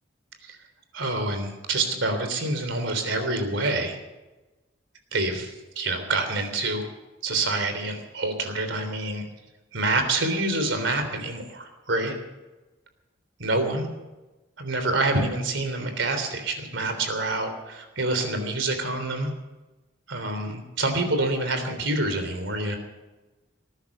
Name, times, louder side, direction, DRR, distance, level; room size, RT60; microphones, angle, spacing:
voice 1, 0.9-4.0 5.1-6.8 7.2-9.3 9.7-12.1 13.4-13.9 14.6-19.3 20.1-22.8, right 2 dB, 75° right, 7 dB, 3.4 m, -27 dB
19.5 x 10.5 x 6.7 m, 1.1 s
head